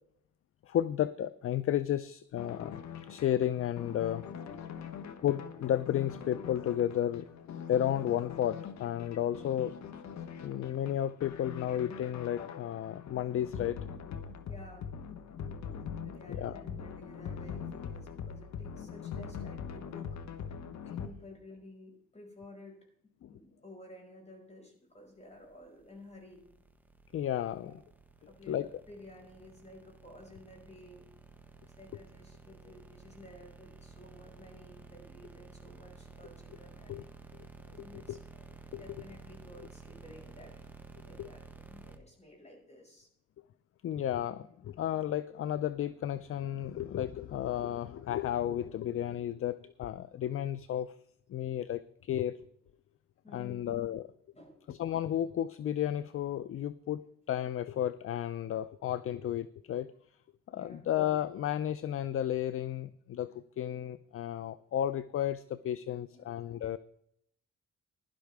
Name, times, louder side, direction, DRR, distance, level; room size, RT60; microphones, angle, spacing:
voice 1, 0.7-2.8 3.1-4.2 5.2-9.7 10.4-13.8 16.4-16.6 20.9-21.0 23.2-23.3 27.1-27.7 28.5-28.7 36.9-37.0 38.1-38.2 38.7-38.8 41.2-41.3 43.8-50.9 51.3-52.4 53.3-54.1 54.7-59.9 60.5-66.8, left 11 dB, 45° left, 16 dB, 0.5 m, -33 dB
sound 1, 2.4-21.1, left 7 dB, 65° left, 1.1 m, -43 dB
voice 2, 4.3-4.9 14.5-14.9 15.8-20.1 20.9-22.8 23.3-26.4 27.6-27.7 28.3-31.1 31.6-37.0 37.7-38.4 38.7-40.5 41.0-43.1 53.2-53.7 54.4-54.6 60.5-60.9 66.1-66.3, left 1 dB, 20° left, 1 dB, 5.5 m, -53 dB
sound 2, 25.4-42.0, right 4 dB, 5° right, 1.2 m, -53 dB
16.5 x 11.5 x 3.5 m, 0.71 s
cardioid pair, 90°, 30 cm